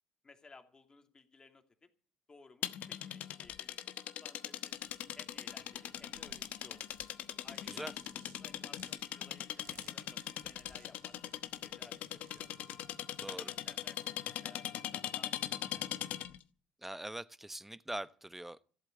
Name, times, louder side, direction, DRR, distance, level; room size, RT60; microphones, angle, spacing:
voice 1, 0.2-1.9 2.3-6.9 7.4-7.9 8.4-12.5 13.2-16.0, left 3 dB, 30° left, 2.6 m, -59 dB
sound 1, 2.6-16.4, left 12 dB, 65° left, 1.1 m, -41 dB
sound 2, 4.7-13.8, right 5 dB, 80° right, 5.5 m, -65 dB
voice 2, 13.2-13.5 16.8-18.6, right 1 dB, 10° right, 0.9 m, -43 dB
14.5 x 8.2 x 9.5 m
hypercardioid pair, 60°, 3 cm